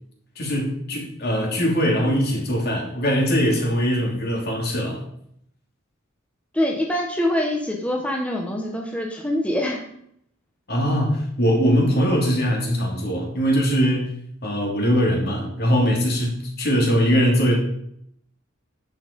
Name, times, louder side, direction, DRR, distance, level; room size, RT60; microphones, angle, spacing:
voice 1, 0.4-5.0 10.7-14.1 14.4-17.6, equal, 50° left, 0 dB, 2.9 m, -21 dB
voice 2, 6.5-9.8, left 1 dB, 5° left, 0 dB, 1.2 m, -24 dB
10.5 x 7.2 x 5.3 m, 0.70 s
head